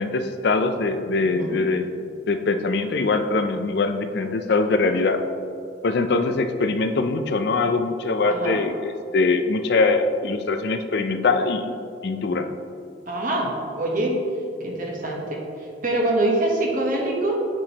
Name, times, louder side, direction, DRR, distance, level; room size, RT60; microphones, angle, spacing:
voice 1, 0.0-1.9 2.3-5.2 5.8-11.8 12.0-12.5, left 3 dB, 55° left, 8 dB, 0.4 m, -22 dB
voice 2, 1.2-1.7 8.3-8.6 13.1-14.2 14.6-17.5, right 1 dB, 45° right, -1 dB, 1.1 m, -25 dB
8.6 x 6.1 x 2.9 m, 2.5 s
head